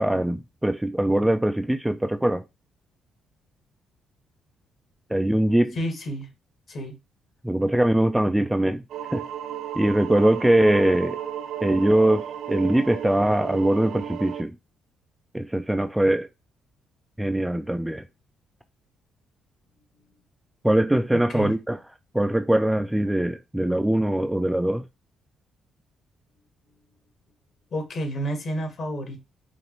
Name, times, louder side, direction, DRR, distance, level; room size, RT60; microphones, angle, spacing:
voice 1, 0.0-2.4 5.1-5.8 7.4-8.8 9.1-9.2 9.8-11.2 11.6-14.5 15.3-16.3 17.2-18.0 20.6-21.8 22.1-24.8, right 1 dB, 10° right, 0.3 m, -22 dB
voice 2, 5.7-6.3 6.7-6.9 21.3-21.5 27.7-29.2, equal, 55° left, 1.7 m, -30 dB
sound 1, 8.9-14.4, right 10 dB, 75° right, 0.4 m, -34 dB
5.0 x 2.5 x 3.0 m
cardioid pair, 90°, 0 cm